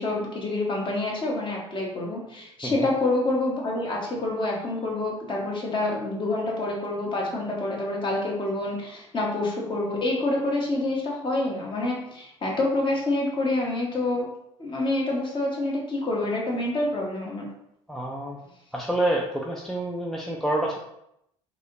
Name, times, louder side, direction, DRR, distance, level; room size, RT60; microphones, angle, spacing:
voice 1, 0.0-14.3 14.6-17.5, left 2 dB, 30° left, -2 dB, 1.1 m, -27 dB
voice 2, 17.9-18.4 18.7-20.8, right 1 dB, ahead, -1 dB, 0.4 m, -27 dB
3.0 x 2.8 x 2.8 m, 0.79 s
hypercardioid pair, 65°, 16 cm